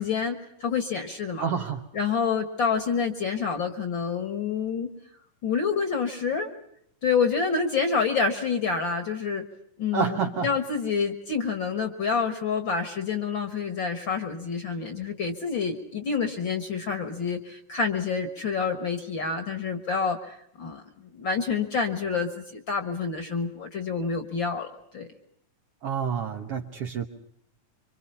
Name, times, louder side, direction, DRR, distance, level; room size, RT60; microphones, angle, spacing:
voice 1, 0.0-1.5 1.9-4.9 5.4-6.5 7.0-9.4 9.8-10.2 10.4-24.7 24.9-25.1, left 5 dB, 45° left, 8 dB, 1.8 m, -28 dB
voice 2, 1.4-1.9 9.9-10.5 25.8-27.1, right 6 dB, 60° right, 4 dB, 1.8 m, -28 dB
26.0 x 25.0 x 5.7 m, 0.72 s
omnidirectional pair, 3.7 m